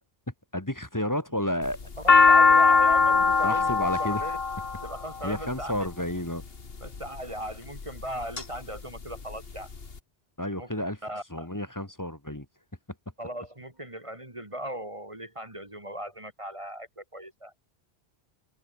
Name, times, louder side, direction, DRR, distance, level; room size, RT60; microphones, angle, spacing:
voice 1, 0.5-1.8 3.4-4.3 5.2-6.4 10.4-11.0 11.3-12.5, left 1 dB, 15° left, 2.1 m, -31 dB
sound 1, 1.6-5.9 6.7-7.2 7.8-8.4 8.8-8.9 9.0-9.9, left 4 dB, 65° left, 1.9 m, -20 dB
voice 2, 2.3-4.4 4.8-5.7 6.8-9.7 10.6-10.7 11.0-11.5 13.2-17.5, right 1 dB, 30° right, 3.1 m, -38 dB
omnidirectional pair, 1.1 m